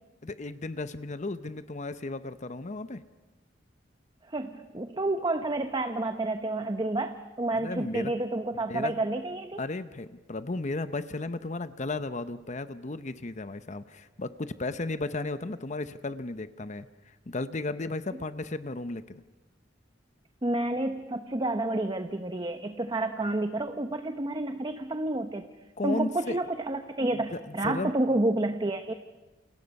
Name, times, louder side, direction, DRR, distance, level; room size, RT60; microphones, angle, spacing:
voice 1, 0.2-3.0 7.5-8.1 8.7-9.0 9.6-19.2 25.8-26.4 27.3-27.9, left 2 dB, 40° left, 12 dB, 0.8 m, -34 dB
voice 2, 4.3-9.6 20.4-25.4 25.8-28.9, right 2 dB, 25° right, 7 dB, 0.9 m, -29 dB
29.0 x 28.5 x 5.4 m, 1.1 s
head